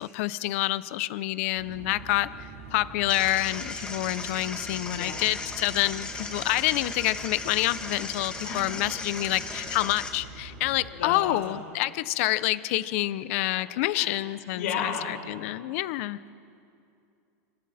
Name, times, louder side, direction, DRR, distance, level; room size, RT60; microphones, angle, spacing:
voice 1, 0.0-16.2, left 17 dB, 55° left, 15 dB, 0.8 m, -28 dB
sound 1, 1.5-10.9, right 5 dB, 55° right, 7.3 m, -45 dB
sound 2, 3.1-10.1, left 3 dB, 10° left, 2.1 m, -37 dB
voice 2, 5.0-5.3 8.4-8.6 10.9-11.5 13.5-13.6 13.9-14.1 14.5-15.1, left 7 dB, 75° left, -3 dB, 7.1 m, -33 dB
28.5 x 26.5 x 4.4 m, 2.5 s
supercardioid pair, 145°, 8 cm